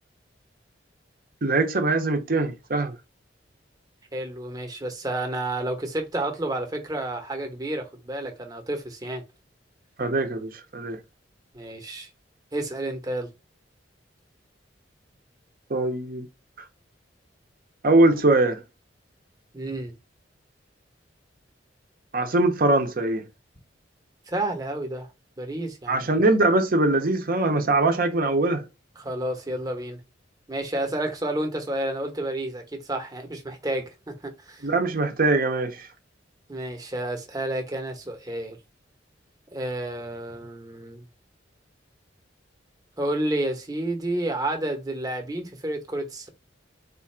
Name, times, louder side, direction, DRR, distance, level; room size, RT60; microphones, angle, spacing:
voice 1, 1.4-2.9 10.0-11.0 15.7-16.3 17.8-18.6 22.1-23.3 25.9-28.6 34.6-35.9, right 2 dB, 50° right, 0.8 m, -22 dB
voice 2, 4.1-9.2 11.5-12.1 12.5-13.3 19.5-19.9 24.3-25.1 25.4-26.0 29.0-30.0 30.5-34.7 36.5-38.6 39.5-41.1 43.0-46.3, right 1 dB, 20° right, 0.9 m, -30 dB
4.0 x 2.5 x 4.3 m
head